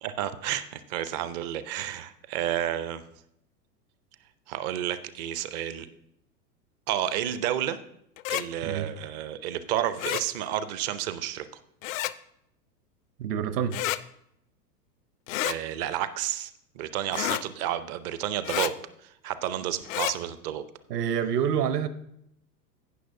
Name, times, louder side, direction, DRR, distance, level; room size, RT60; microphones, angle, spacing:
voice 1, 0.0-3.0 4.5-5.9 6.9-7.8 8.3-11.5 15.4-18.7 19.0-20.7, right 11 dB, 30° right, 14 dB, 0.4 m, -31 dB
sound 1, 8.2-8.4 10.0-10.2 11.8-12.1 13.7-14.0 15.3-15.6 17.1-17.4 18.4-18.7 19.8-20.1, left 15 dB, 55° left, 0.5 m, -29 dB
voice 2, 13.2-13.8 20.9-21.9, right 8 dB, 70° right, 11 dB, 1.0 m, -27 dB
17.0 x 6.2 x 2.6 m, 0.76 s
hypercardioid pair, 100°, 49 cm